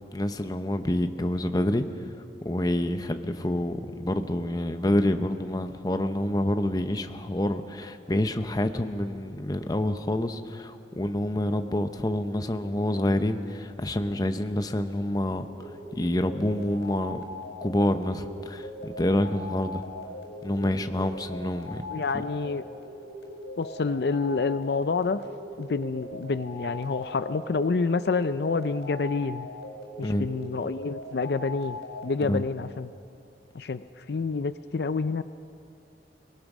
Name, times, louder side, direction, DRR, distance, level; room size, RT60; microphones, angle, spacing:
voice 1, 0.1-1.8 2.4-15.5 15.9-17.2 17.6-19.8 20.4-21.8 22.1-22.2 30.0-30.3 32.2-32.4, left 1 dB, 20° left, 8 dB, 0.8 m, -27 dB
sound 1, 15.5-32.1, left 1 dB, 85° left, 4.8 m, -40 dB
voice 2, 21.9-22.6 23.6-25.2 25.6-29.5 30.0-31.8 32.0-32.9 33.5-35.2, left 4 dB, 65° left, 13 dB, 0.5 m, -28 dB
23.0 x 19.5 x 6.1 m, 2.7 s
head